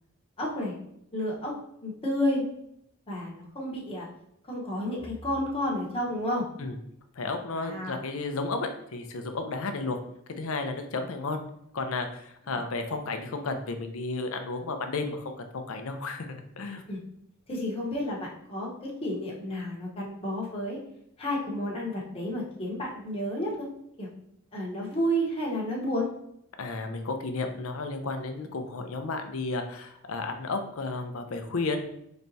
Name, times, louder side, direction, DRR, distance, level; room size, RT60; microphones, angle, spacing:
voice 1, 0.4-0.7 1.1-1.5 1.8-2.4 3.1-4.1 4.4-6.4 7.5-8.0 12.5-12.6 16.9-17.0 17.5-20.8 21.2-23.7 24.0-24.1 24.5-26.1, equal, 25° left, -4 dB, 0.9 m, -31 dB
voice 2, 7.2-10.0 10.3-11.4 11.7-16.3 16.6-16.8 26.6-31.8, left 3 dB, 70° left, 6 dB, 0.6 m, -33 dB
4.1 x 3.4 x 2.6 m, 0.75 s
head